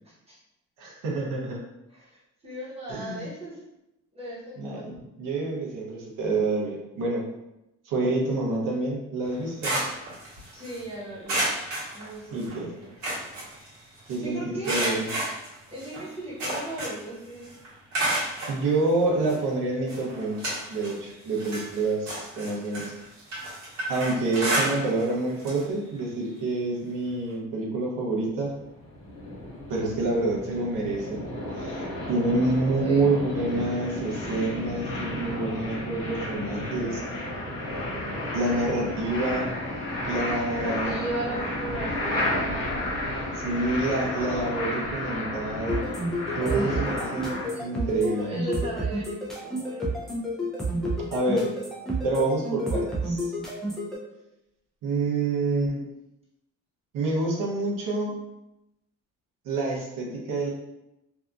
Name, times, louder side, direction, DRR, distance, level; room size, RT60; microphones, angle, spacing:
voice 1, 0.0-0.4 1.9-2.2 2.4-3.6 4.1-5.0 10.5-11.4 11.9-13.2 14.2-14.9 15.7-17.4 32.8-33.1 40.3-42.7 46.3-46.8 47.5-49.9, right 1 dB, 20° right, -8 dB, 0.9 m, -37 dB
voice 2, 0.8-1.6 2.9-3.3 4.6-7.3 7.9-9.9 12.3-12.7 14.1-15.1 18.5-22.9 23.9-28.5 29.7-31.2 31.6-37.0 38.3-39.5 40.0-40.9 43.3-45.8 46.4-48.3 51.1-51.5 52.0-53.3 54.8-55.8 56.9-58.1 59.4-60.5, right 2 dB, 85° right, -2 dB, 0.8 m, -27 dB
sound 1, 9.2-10.8 11.3-12.5 12.8-14.1 14.6-17.1 17.4-18.6 19.3-19.4 19.9-21.0 21.3-25.1 25.4-25.6 26.0-26.1 27.3-27.4, right 1 dB, 65° right, 1.3 m, -31 dB
sound 2, 28.5-47.5, left 1 dB, 40° left, 1.1 m, -32 dB
sound 3, 45.7-54.0, right 1 dB, ahead, 0.4 m, -30 dB
2.7 x 2.3 x 2.3 m, 0.90 s
cardioid pair, 165°, 32 cm